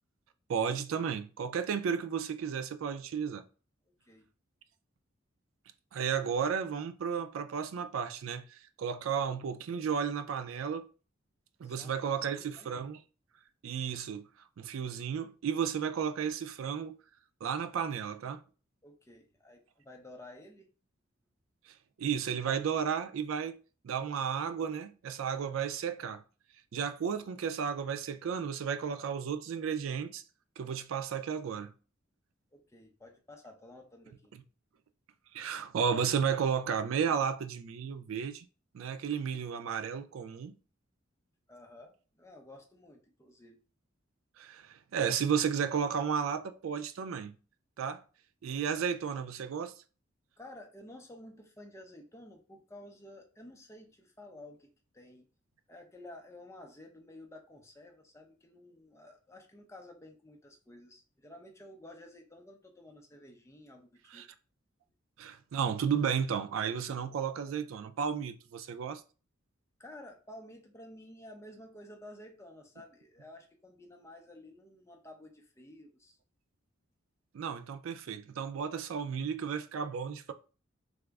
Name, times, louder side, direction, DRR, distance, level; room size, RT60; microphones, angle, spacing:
voice 1, 0.5-3.4 5.9-10.9 11.6-13.0 13.6-14.3 14.6-17.0 17.4-18.4 22.0-23.6 23.8-26.2 26.7-30.2 30.6-31.7 35.3-38.5 38.7-40.5 44.4-47.3 47.8-48.0 48.4-49.7 64.1-64.3 65.2-69.0 77.3-80.3, right 7 dB, 85° right, 0.4 m, -33 dB
voice 2, 11.6-12.7 18.8-20.7 32.5-34.3 41.5-43.6 48.5-48.6 50.4-54.7 54.9-55.3 55.7-64.2 69.8-76.2, left 1 dB, 15° left, 0.5 m, -52 dB
3.5 x 2.0 x 3.4 m
head